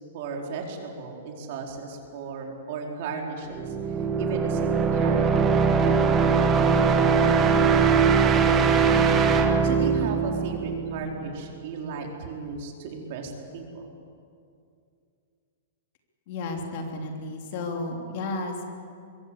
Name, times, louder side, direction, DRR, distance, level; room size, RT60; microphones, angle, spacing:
voice 1, 0.1-3.8 4.2-5.7 7.3-9.0 9.6-13.9, right 4 dB, 45° right, 1 dB, 4.4 m, -35 dB
sound 1, 3.5-11.2, right 5 dB, 15° right, 1.6 m, -21 dB
voice 2, 16.3-18.6, left 2 dB, 45° left, 2 dB, 3.1 m, -32 dB
24.5 x 22.5 x 8.5 m, 2.4 s
hypercardioid pair, 165°, 0 cm